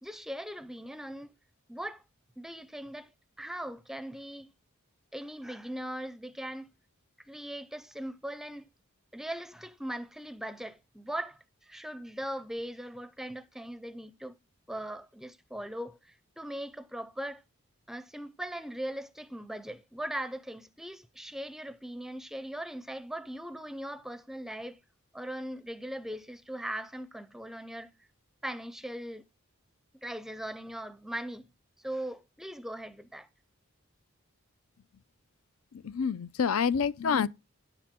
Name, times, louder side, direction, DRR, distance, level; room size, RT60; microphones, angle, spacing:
voice 1, 0.0-1.3 1.7-2.0 2.4-3.1 3.4-4.5 5.1-6.7 7.2-8.7 9.1-14.4 14.7-17.4 17.9-24.8 25.1-27.9 28.4-29.2 29.9-31.5 31.8-33.3, right 1 dB, ahead, 0.4 m, -39 dB
voice 2, 35.7-37.3, left 6 dB, 85° left, 0.5 m, -28 dB
10.0 x 7.4 x 3.6 m
head